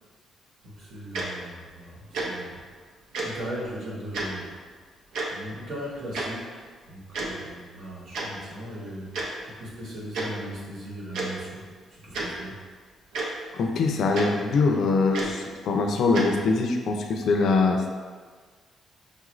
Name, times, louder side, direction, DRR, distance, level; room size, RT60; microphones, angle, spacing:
voice 1, 0.6-2.6 3.2-4.6 5.3-11.6 11.9-12.5, equal, 60° right, -5 dB, 1.1 m, -38 dB
Tick-tock, 1.1-1.2 2.1-2.3 3.1-3.3 4.1-4.3 5.1-5.3 6.1-6.3 7.1-7.3 8.1-8.3 9.1-9.2 10.1-10.3 11.1-11.3 12.1-12.3 13.1-13.2 14.1-14.3 15.1-15.3 16.1-16.3, right 3 dB, 80° right, 0.6 m, -30 dB
voice 2, 13.5-17.9, left 3 dB, 60° left, 3 dB, 0.4 m, -23 dB
5.2 x 2.5 x 3.1 m, 1.5 s
cardioid pair, 155°, 0 cm